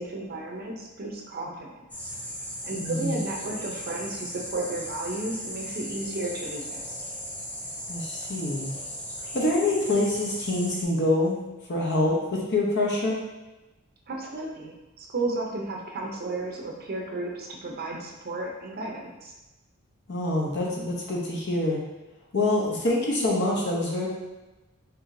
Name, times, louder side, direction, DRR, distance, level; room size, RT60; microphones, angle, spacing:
voice 1, 0.0-2.1 2.6-7.0 14.1-19.3, right 2 dB, 45° right, 0 dB, 0.6 m, -33 dB
sound 1, 1.9-10.8, equal, 5° left, 0.4 m, -37 dB
voice 2, 2.8-3.2 7.9-8.7 9.3-11.4 11.7-13.2 20.1-21.8 22.3-24.1, left 2 dB, 50° left, -3 dB, 0.7 m, -25 dB
4.5 x 3.0 x 2.6 m, 1.1 s
head